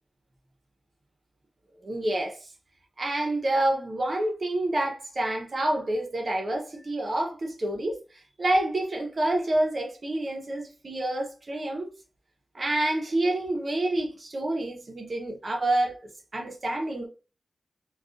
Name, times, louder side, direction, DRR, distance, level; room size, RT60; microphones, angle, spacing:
voice 1, 1.8-2.4 3.0-8.0 8.4-11.9 12.5-17.1, right 1 dB, 40° right, 0.7 m, -28 dB
3.6 x 2.3 x 2.4 m
wide cardioid pair, 135°, 0 cm